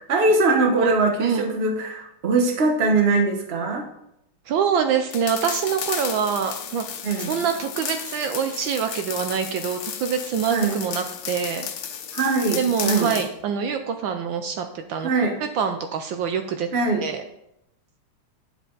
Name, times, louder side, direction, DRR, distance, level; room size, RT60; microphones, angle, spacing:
voice 1, 0.0-3.8 7.0-7.3 10.5-10.8 12.1-13.1 15.0-15.4 16.7-17.1, right 3 dB, 35° right, 4 dB, 1.3 m, -22 dB
voice 2, 4.5-6.8 7.2-11.7 12.6-15.1 15.5-16.7 17.0-17.2, right 7 dB, 75° right, 6 dB, 1.4 m, -25 dB
sound 1, 5.1-13.3, left 8 dB, 80° left, 1.7 m, -33 dB
9.9 x 7.6 x 3.9 m, 0.79 s
omnidirectional pair, 2.2 m